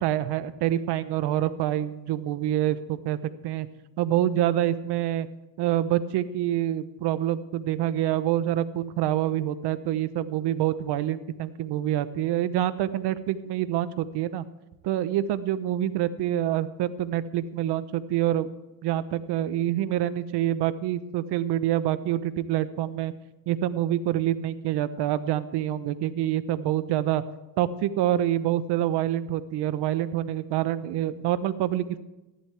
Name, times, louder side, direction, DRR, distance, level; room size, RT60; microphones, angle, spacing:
voice 1, 0.0-3.2 3.4-3.7 4.0-5.3 5.6-14.4 14.8-18.5 18.8-23.1 23.5-27.2 27.6-32.0, right 12 dB, 65° right, 14 dB, 1.0 m, -26 dB
14.5 x 11.5 x 3.4 m, 1.0 s
cardioid pair, 110°, 44 cm